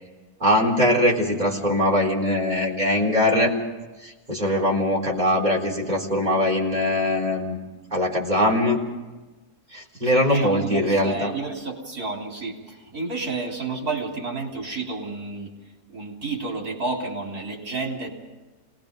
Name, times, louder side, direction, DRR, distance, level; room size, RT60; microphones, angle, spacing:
voice 1, 0.4-3.5 4.0-7.6 7.9-8.8 9.7-11.3, left 1 dB, 30° right, -2 dB, 4.1 m, -21 dB
voice 2, 10.0-15.5 15.9-18.1, right 3 dB, 70° right, 0 dB, 4.0 m, -31 dB
28.0 x 19.5 x 5.3 m, 1.2 s
omnidirectional pair, 1.6 m